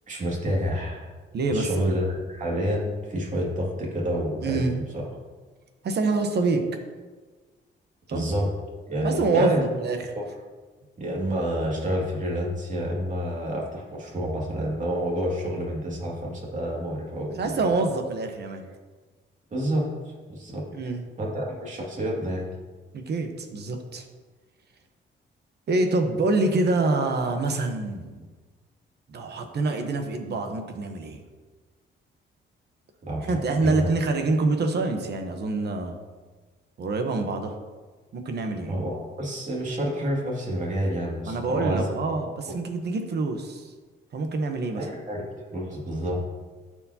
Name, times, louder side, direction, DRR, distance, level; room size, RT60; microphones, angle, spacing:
voice 1, 0.1-1.1 1.5-2.0 2.3-5.0 8.1-8.5 8.9-9.7 10.1-10.3 11.0-17.7 19.5-19.9 20.3-20.6 21.2-22.5 33.0-33.3 33.6-33.9 38.7-41.9 42.5-42.6 44.8-46.2, equal, 40° right, -3 dB, 2.3 m, -28 dB
voice 2, 1.3-2.0 4.4-4.8 5.8-6.6 8.1-8.2 9.0-10.1 17.4-18.6 20.7-21.0 22.9-24.0 25.7-28.1 29.1-31.2 33.2-36.0 36.8-37.6 38.1-38.7 41.3-43.7 44.1-44.9, right 3 dB, 60° right, 5 dB, 1.0 m, -26 dB
14.0 x 4.6 x 2.8 m, 1.4 s
cardioid pair, 115°, 20 cm